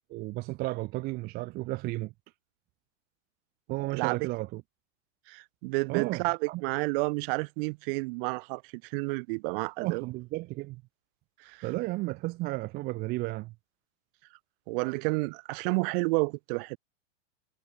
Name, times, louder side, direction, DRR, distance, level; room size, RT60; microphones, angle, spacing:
voice 1, 0.1-2.1 3.7-4.6 5.9-6.6 9.8-10.8 11.6-13.5, right 20 dB, 25° right, 0.6 m, -33 dB
voice 2, 5.3-10.0 11.4-11.6 14.7-16.8, right 29 dB, 45° right, 1.6 m, -30 dB
hypercardioid pair, 140°, 38 cm